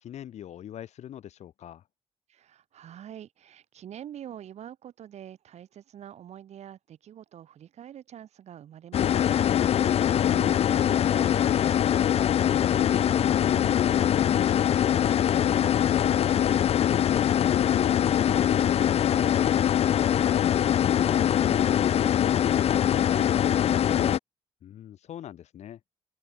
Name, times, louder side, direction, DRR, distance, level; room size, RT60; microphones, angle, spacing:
voice 1, 0.0-1.8 24.6-25.8, left 11 dB, 90° left, 6.0 m, -43 dB
voice 2, 2.3-9.3 9.6-16.6 17.7-24.2, right 10 dB, 80° right, 6.3 m, -47 dB
sound 1, 8.9-24.2, left 10 dB, 65° left, 0.7 m, -23 dB
open air
wide cardioid pair, 140°, 11 cm